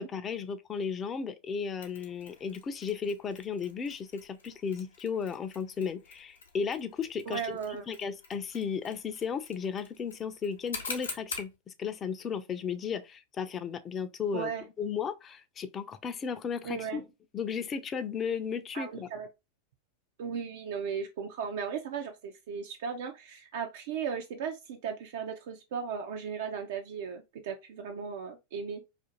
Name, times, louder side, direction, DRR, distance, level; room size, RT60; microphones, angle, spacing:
voice 1, 0.0-7.5 7.9-14.5 14.8-17.0 17.3-19.1, left 6 dB, 25° left, 0.4 m, -35 dB
Mechanisms, 1.8-11.6, left 4 dB, 85° left, 0.8 m, -46 dB
voice 2, 7.3-7.8 14.3-14.6 16.6-17.0 18.7-19.3 20.2-28.8, right 6 dB, 65° right, 0.4 m, -36 dB
2.5 x 2.4 x 2.8 m
hypercardioid pair, 100°, 0 cm